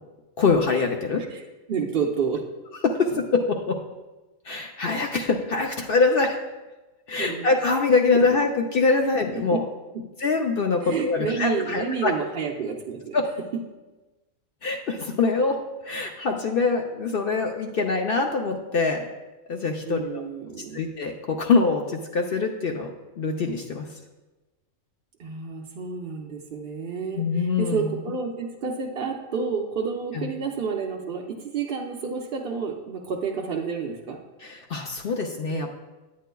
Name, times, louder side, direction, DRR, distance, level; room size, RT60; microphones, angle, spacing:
voice 1, 0.4-1.2 2.8-3.8 4.4-6.4 7.1-9.6 10.2-12.1 13.1-13.2 14.6-15.6 15.8-19.1 19.5-20.2 20.7-23.9 27.1-28.0 30.1-30.3 34.4-35.7, left 4 dB, 60° left, 3 dB, 0.6 m, -24 dB
voice 2, 1.7-2.5 7.2-7.5 8.1-8.2 9.5-9.6 10.8-13.2 19.9-20.9 25.2-34.2, right 5 dB, 55° right, 0 dB, 0.7 m, -30 dB
9.3 x 9.1 x 2.3 m, 1.1 s
omnidirectional pair, 1.4 m